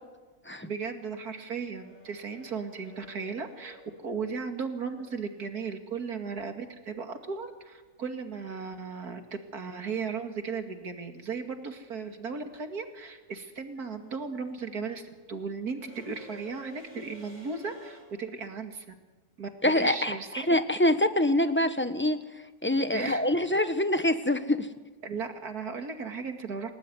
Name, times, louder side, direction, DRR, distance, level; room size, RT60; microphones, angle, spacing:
voice 1, 0.6-18.9 19.4-20.5 22.9-23.4 24.0-24.1 25.0-26.7, right 5 dB, 80° right, 6 dB, 2.8 m, -36 dB
sound 1, 1.8-5.8 8.3-8.4 9.6-10.0 10.2-18.0, equal, 25° left, 7.6 m, -54 dB
voice 2, 19.6-22.2 22.6-24.7, left 1 dB, 10° left, 10 dB, 1.1 m, -25 dB
28.5 x 19.0 x 9.7 m, 1.3 s
omnidirectional pair, 1.6 m